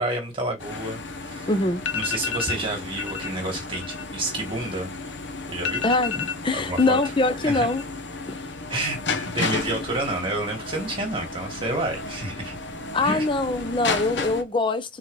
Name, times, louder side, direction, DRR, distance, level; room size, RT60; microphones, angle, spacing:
voice 1, 0.0-1.5 1.9-4.9 5.5-5.9 6.5-7.0 7.4-7.7 8.7-12.6 13.0-13.3, right 2 dB, 25° right, 1.7 m, -29 dB
sound 1, 0.6-14.4, left 3 dB, 65° left, 1.0 m, -33 dB
voice 2, 1.5-1.9 5.8-7.8 12.9-15.0, left 2 dB, 25° left, 0.7 m, -23 dB
sound 2, 1.8-2.6 3.0-3.3 3.6-5.1 5.3-5.4 5.6-7.1 7.4-8.0 8.3-8.8, left 7 dB, 80° left, 0.6 m, -31 dB
4.5 x 4.0 x 5.3 m
head